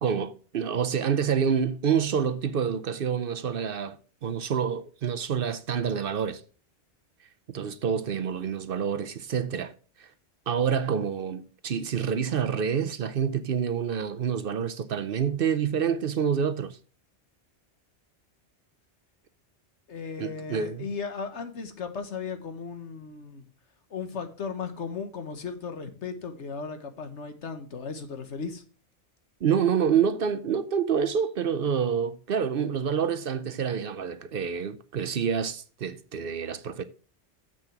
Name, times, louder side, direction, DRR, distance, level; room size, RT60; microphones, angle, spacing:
voice 1, 0.0-4.0 4.2-6.4 7.5-9.7 10.0-10.1 10.5-16.8 20.2-20.9 29.4-36.8, right 7 dB, 60° right, 0.8 m, -27 dB
voice 2, 19.9-23.5 23.9-28.6, left 5 dB, 80° left, 1.6 m, -36 dB
7.5 x 6.2 x 5.9 m
omnidirectional pair, 1.2 m